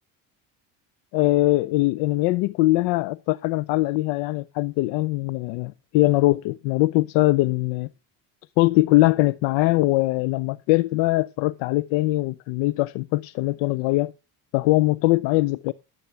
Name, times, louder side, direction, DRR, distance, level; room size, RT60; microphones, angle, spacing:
voice 1, 1.1-7.9 8.6-14.1 14.5-15.7, left 19 dB, 90° left, 0.6 m, -21 dB
11.0 x 7.9 x 5.6 m
cardioid pair, 105°, 43 cm